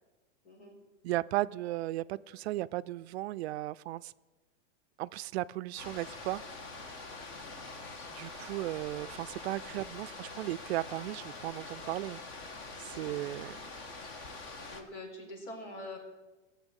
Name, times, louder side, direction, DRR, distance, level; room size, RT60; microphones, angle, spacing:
voice 1, 0.4-0.7 7.3-8.0 9.6-9.8 13.1-13.3 14.7-16.0, left 1 dB, 65° left, 1 dB, 4.6 m, -46 dB
voice 2, 1.0-4.1 5.0-6.4 8.1-12.2 12.8-13.6, right 16 dB, 60° right, 16 dB, 0.5 m, -35 dB
sound 1, 5.8-14.8, left 3 dB, 35° left, 1.5 m, -45 dB
15.5 x 7.2 x 8.1 m, 1.2 s
supercardioid pair, 150°, 36 cm